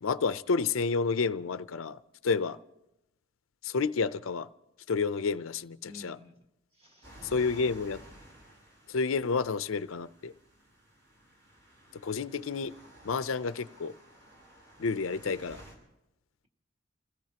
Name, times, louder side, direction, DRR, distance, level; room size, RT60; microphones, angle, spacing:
voice 1, 0.0-2.6 3.6-4.5 4.9-6.2 7.2-8.0 8.9-10.3 11.9-12.7 13.0-13.9 14.8-15.6, left 4 dB, 85° left, 0.5 m, -30 dB
voice 2, 5.8-6.3 6.7-7.3 15.2-15.6, left 1 dB, 30° right, 1.8 m, -52 dB
sound 1, 7.0-15.8, equal, 60° right, 6.3 m, -54 dB
28.5 x 16.5 x 2.9 m
head